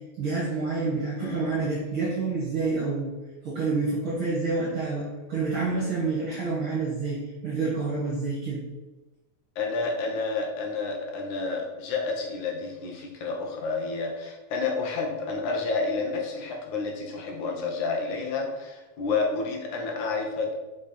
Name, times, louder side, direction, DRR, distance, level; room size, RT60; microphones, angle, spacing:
voice 1, 0.2-3.1 3.4-8.6, right 3 dB, 50° right, -5 dB, 2.0 m, -28 dB
voice 2, 1.2-1.5 9.6-20.5, left 4 dB, 70° left, 1 dB, 2.4 m, -30 dB
6.1 x 5.5 x 4.3 m, 1.2 s
omnidirectional pair, 3.6 m